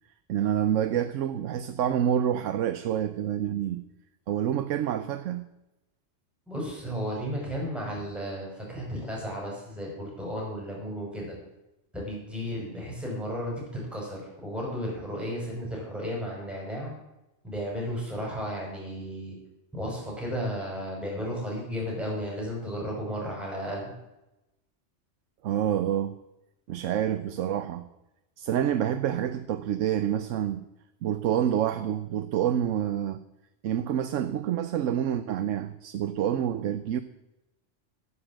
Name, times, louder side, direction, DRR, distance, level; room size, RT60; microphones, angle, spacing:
voice 1, 0.3-3.8 4.3-5.5 25.4-26.1 26.7-27.9 28.4-30.6 31.0-33.2 33.6-37.0, right 10 dB, 85° right, 11 dB, 1.0 m, -27 dB
voice 2, 6.5-11.3 11.9-16.9 17.4-19.4 19.7-23.9, equal, ahead, -3 dB, 5.6 m, -34 dB
11.5 x 9.8 x 7.4 m, 0.94 s
omnidirectional pair, 1.3 m